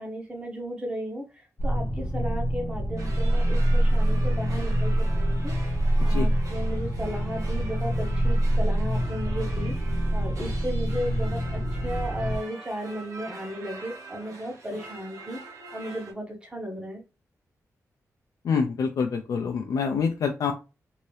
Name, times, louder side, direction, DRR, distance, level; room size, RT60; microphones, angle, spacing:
voice 1, 0.0-9.7 10.1-17.0, right 1 dB, 15° right, 1.0 m, -35 dB
sound 1, 1.6-12.4, right 1 dB, 35° left, 0.9 m, -25 dB
sound 2, 3.0-16.1, right 3 dB, 65° right, 1.0 m, -44 dB
voice 2, 18.4-20.5, left 5 dB, 80° left, 0.4 m, -26 dB
2.8 x 2.6 x 3.2 m
wide cardioid pair, 165°, 6 cm